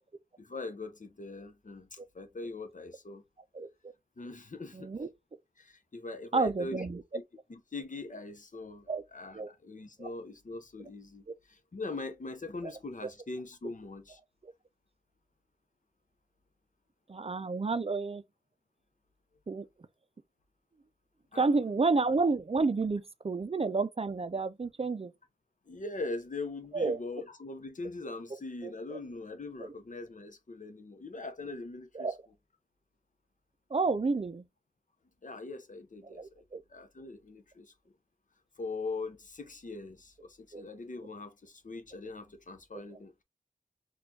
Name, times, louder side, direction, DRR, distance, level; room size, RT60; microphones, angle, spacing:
voice 1, 0.4-3.2 4.2-4.9 5.6-6.9 7.5-14.2 21.3-21.5 25.7-32.1 35.2-36.4 36.7-37.7 38.6-43.2, left 3 dB, 60° left, 0.7 m, -41 dB
voice 2, 4.7-5.1 6.3-7.0 8.9-9.0 9.3-9.5 10.0-10.1 14.4-14.5 17.1-18.2 19.5-19.7 21.4-25.1 26.7-27.0 28.6-29.0 31.9-32.2 33.7-34.4 36.1-36.6 40.5-40.6, right 3 dB, 40° right, 0.4 m, -30 dB
4.2 x 2.3 x 2.7 m
wide cardioid pair, 50°, 15 cm